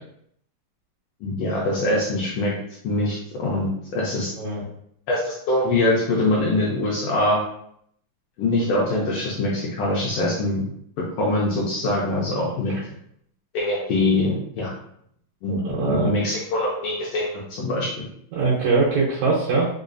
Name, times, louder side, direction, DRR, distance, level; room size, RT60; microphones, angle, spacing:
voice 1, 1.2-2.5 2.8-4.3 5.1-7.4 8.4-10.7 11.2-12.7 13.5-14.7 15.4-18.0, left 2 dB, 80° left, -4 dB, 1.4 m, -23 dB
voice 2, 15.5-16.1 18.3-19.7, right 4 dB, 75° right, -6 dB, 1.9 m, -22 dB
4.9 x 2.3 x 2.5 m, 0.70 s
omnidirectional pair, 3.4 m